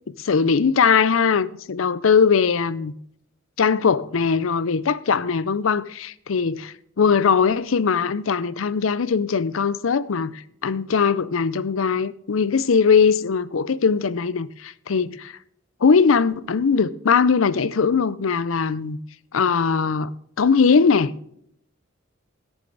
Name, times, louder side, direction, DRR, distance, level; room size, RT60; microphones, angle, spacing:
voice 1, 0.1-2.9 3.6-15.3 15.8-19.0 19.3-20.1 20.4-21.1, left 5 dB, 90° left, 0.6 m, -20 dB
16.5 x 7.2 x 3.9 m
head